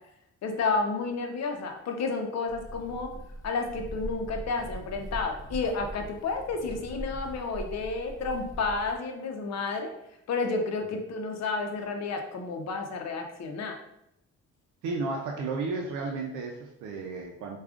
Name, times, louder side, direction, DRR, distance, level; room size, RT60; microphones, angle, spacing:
voice 1, 0.4-3.1 3.4-9.9 10.3-13.8, left 4 dB, 60° left, 4 dB, 0.7 m, -31 dB
sound 1, 2.5-8.9, equal, 10° left, 0.7 m, -41 dB
voice 2, 14.8-17.6, right 3 dB, 80° right, 0 dB, 0.6 m, -33 dB
4.8 x 2.4 x 2.4 m, 0.80 s
cardioid pair, 90°, 30 cm